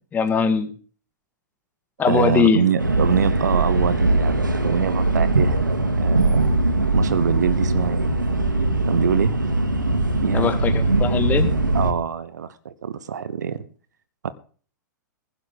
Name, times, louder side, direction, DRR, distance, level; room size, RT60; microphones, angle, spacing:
voice 1, 0.1-0.7 2.0-2.6 10.3-11.5, left 6 dB, 15° left, 8 dB, 1.8 m, -20 dB
voice 2, 2.1-5.6 6.0-6.5 6.9-8.1 8.9-9.4 10.2-10.5 11.7-13.7 14.2-14.3, right 7 dB, 65° right, 16 dB, 1.0 m, -24 dB
sound 1, 2.8-11.9, right 2 dB, 80° right, 2.1 m, -21 dB
15.5 x 12.0 x 3.8 m, 0.40 s
figure-of-eight pair, 105°, 10 cm